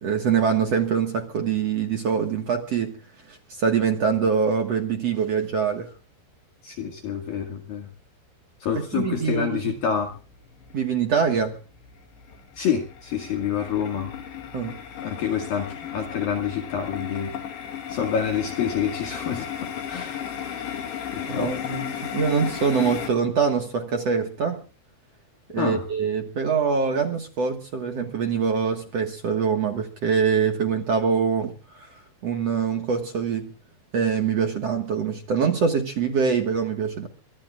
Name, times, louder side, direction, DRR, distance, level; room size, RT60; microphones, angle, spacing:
voice 1, 0.0-3.0 3.3-5.9 8.8-9.7 10.7-11.6 14.5-14.8 21.3-24.6 25.5-33.5 33.9-37.1, right 6 dB, 55° right, 1.9 m, -24 dB
voice 2, 6.6-7.9 8.6-10.2 12.6-14.1 15.0-17.4 17.9-20.2 21.1-21.8 25.6-25.9, left 7 dB, 60° left, 3.6 m, -28 dB
sound 1, 10.1-10.8 11.1-23.1, left 9 dB, 90° left, 4.9 m, -35 dB
23.5 x 23.5 x 2.5 m
omnidirectional pair, 5.0 m